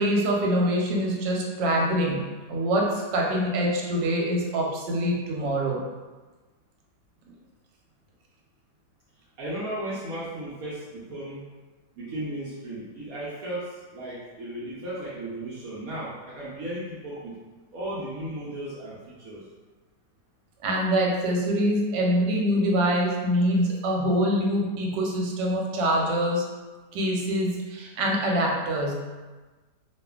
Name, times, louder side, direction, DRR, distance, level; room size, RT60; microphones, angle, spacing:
voice 1, 0.0-2.2 2.5-5.8 20.6-26.4 26.9-28.9, equal, 85° right, -1 dB, 1.2 m, -24 dB
voice 2, 9.4-11.4 11.9-17.3 17.7-19.4, right 1 dB, 70° right, -9 dB, 0.9 m, -35 dB
2.7 x 2.4 x 2.3 m, 1.3 s
omnidirectional pair, 1.8 m